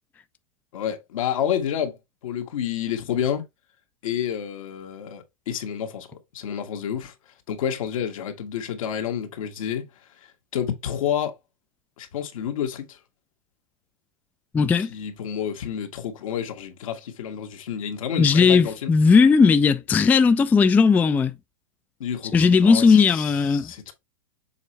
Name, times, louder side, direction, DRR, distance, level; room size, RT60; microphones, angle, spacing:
voice 1, 0.7-2.0 2.2-3.4 4.0-7.1 7.5-9.9 10.2-11.4 12.0-13.0 14.9-18.9 22.0-23.9, left 9 dB, 75° left, 1.7 m, -29 dB
voice 2, 14.5-14.9 18.2-21.3 22.3-23.7, left 5 dB, 10° left, 0.3 m, -17 dB
7.0 x 4.3 x 3.1 m
hypercardioid pair, 120°, 18 cm